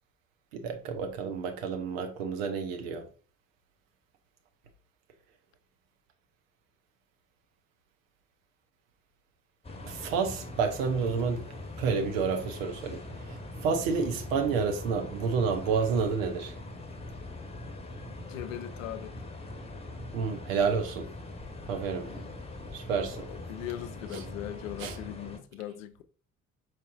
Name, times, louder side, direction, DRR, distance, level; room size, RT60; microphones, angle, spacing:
voice 1, 0.5-3.0 9.8-11.4 11.8-16.6 20.1-21.1 21.7-22.1 22.7-23.3 24.1-24.2 24.8-25.0, right 5 dB, 75° right, 0.7 m, -30 dB
sound 1, 9.6-25.4, left 2 dB, 15° left, 1.0 m, -42 dB
voice 2, 18.2-19.1 23.1-26.0, left 12 dB, 75° left, 0.5 m, -40 dB
4.7 x 4.3 x 2.4 m
figure-of-eight pair, 45°, 40 cm